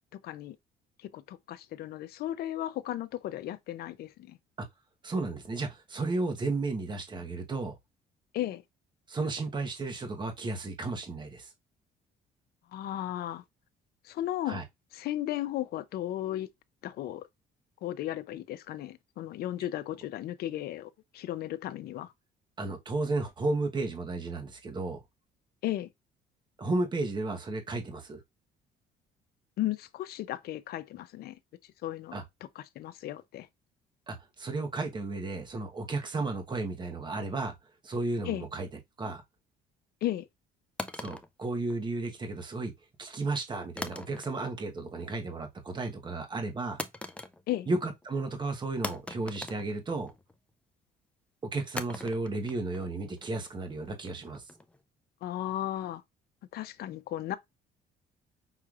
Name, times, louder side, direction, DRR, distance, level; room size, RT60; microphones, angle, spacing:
voice 1, 0.1-0.6 1.0-4.4 8.3-8.6 12.7-13.4 14.0-14.6 14.9-16.5 16.8-17.3 17.8-22.1 25.6-25.9 29.6-32.2 32.6-33.5 38.2-38.5 40.0-40.3 47.5-47.7 55.2-56.0 56.5-57.4, left 13 dB, 65° left, 0.6 m, -35 dB
voice 2, 5.0-7.7 9.1-11.5 14.5-14.6 22.6-25.0 26.6-28.2 32.1-32.2 34.1-37.5 37.8-38.7 39.0-39.2 40.9-42.7 43.0-46.8 47.7-50.1 51.5-54.4, right 3 dB, 25° right, 1.1 m, -33 dB
sound 1, 40.8-42.2 43.8-44.6 44.9-45.4 46.8-47.7 48.0-48.1 48.8-50.4 51.8-54.8, left 2 dB, 5° left, 0.4 m, -41 dB
5.6 x 3.1 x 2.4 m
cardioid pair, 110°, 17 cm